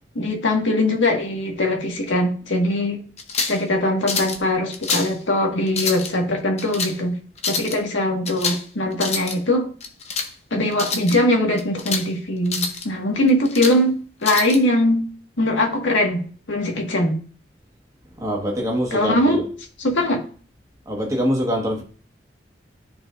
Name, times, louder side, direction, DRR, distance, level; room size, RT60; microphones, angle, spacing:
voice 1, 0.1-3.0 3.4-7.1 7.5-9.7 10.5-13.9 14.2-15.0 15.4-17.2 18.9-19.4 19.8-20.2, left 1 dB, 85° left, 1.7 m, -21 dB
sound 1, 3.2-3.6 4.1-4.4 4.7-5.1 5.7-6.1 6.6-6.9 7.4-7.8 8.3-8.6 8.9-9.4 9.8-10.3 10.7-11.2 11.6-12.1 12.5-12.8 13.3-13.8 14.2-14.6, left 5 dB, 35° left, 0.8 m, -26 dB
voice 2, 18.2-19.4 20.9-21.8, equal, 20° right, 1.4 m, -24 dB
13.0 x 4.5 x 2.5 m
head